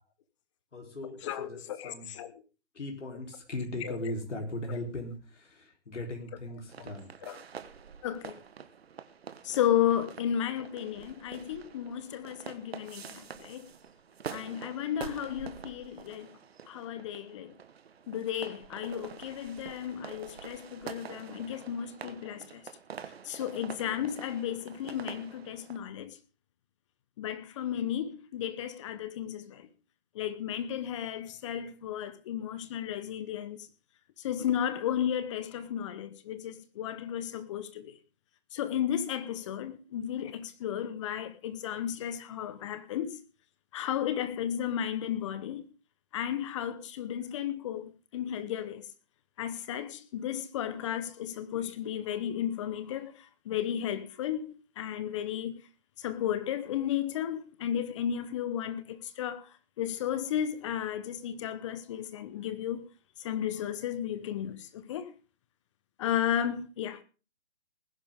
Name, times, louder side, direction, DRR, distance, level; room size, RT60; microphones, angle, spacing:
voice 1, 0.7-2.1 2.7-7.1, left 1 dB, 80° left, 4.1 m, -38 dB
voice 2, 1.2-2.3 3.8-4.0 7.2-7.4 8.0-8.4 9.4-13.7 14.3-16.3 16.7-17.5 18.1-22.6 23.2-26.2 27.2-29.7 30.1-33.7 34.2-38.0 38.5-43.2 43.7-45.6 46.1-48.8 49.4-55.6 56.0-59.5 59.8-62.9 63.2-65.1 66.0-67.0, left 10 dB, 25° left, 1.1 m, -33 dB
sound 1, 6.7-25.8, right 7 dB, 60° right, 1.5 m, -46 dB
19.5 x 11.0 x 3.7 m
figure-of-eight pair, 150°, 35 cm